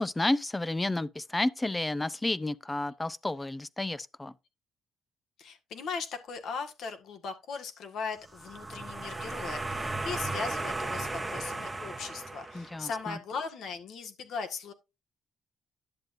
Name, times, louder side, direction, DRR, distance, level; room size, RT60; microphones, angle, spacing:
voice 1, 0.0-4.3 12.5-13.2, left 2 dB, 15° left, 0.6 m, -31 dB
voice 2, 5.4-14.7, left 5 dB, 70° left, 1.7 m, -38 dB
sound 1, 8.3-13.0, right 2 dB, 15° right, 1.0 m, -35 dB
11.0 x 7.5 x 2.6 m
cardioid pair, 90°, 0 cm